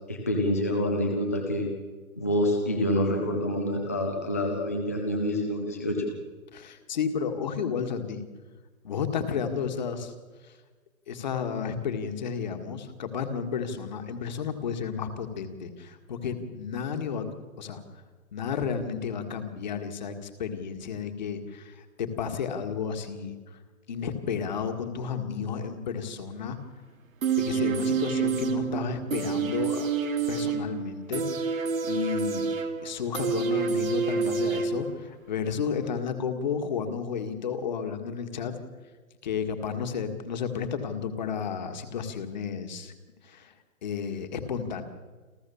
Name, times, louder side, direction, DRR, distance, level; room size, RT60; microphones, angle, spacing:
voice 1, 0.1-1.7 2.2-6.0, left 1 dB, 10° left, 1 dB, 0.6 m, -27 dB
voice 2, 6.5-8.2 8.8-10.1 10.4-10.5 11.1-17.3 17.6-17.8 18.3-23.6 23.9-26.6 27.4-29.9 30.3-31.5 31.8-32.5 32.8-38.6 39.2-42.9 43.2-43.5 43.8-44.8, left 6 dB, 30° left, 7 dB, 1.8 m, -32 dB
sound 1, 27.2-35.2 35.5-35.6, right 5 dB, 65° right, 2.9 m, -28 dB
28.5 x 14.0 x 7.1 m, 1.3 s
hypercardioid pair, 170°, 44 cm